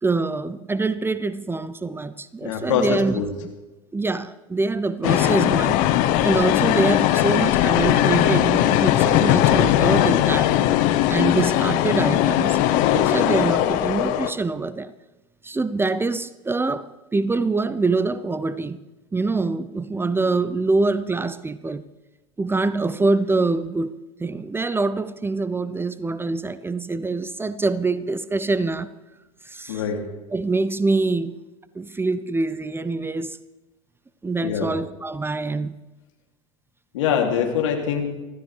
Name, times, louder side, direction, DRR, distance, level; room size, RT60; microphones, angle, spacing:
voice 1, 0.0-3.2 3.9-5.9 6.2-10.5 11.1-12.6 12.9-14.9 15.4-18.8 19.1-21.8 22.4-23.9 24.2-28.9 29.4-29.8 30.3-31.4 31.8-33.4 34.2-35.7, right 3 dB, 15° right, 0.7 m, -24 dB
voice 2, 2.4-3.3 29.7-30.0 34.4-34.7 36.9-38.1, left 7 dB, 70° left, 2.9 m, -23 dB
sound 1, 5.0-14.3, left 12 dB, 55° left, 1.0 m, -19 dB
24.5 x 15.0 x 3.4 m
hypercardioid pair, 75°, 16 cm